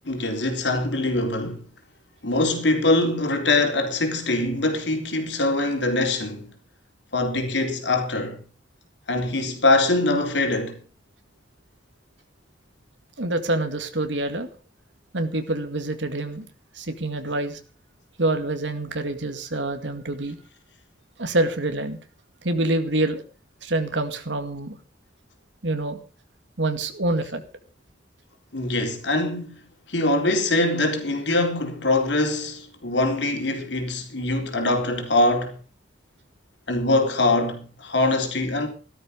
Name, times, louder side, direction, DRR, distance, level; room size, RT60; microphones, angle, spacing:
voice 1, 0.1-1.6 2.2-6.5 7.1-8.4 9.1-10.8 28.5-29.6 29.9-35.6 36.7-38.7, left 2 dB, 75° left, 3.8 m, -23 dB
voice 2, 13.2-14.5 15.1-16.5 16.7-17.6 18.2-20.4 21.2-22.0 22.4-23.2 23.6-24.8 25.6-26.0 26.6-27.4, right 2 dB, 85° right, 2.1 m, -26 dB
16.0 x 12.5 x 5.2 m
head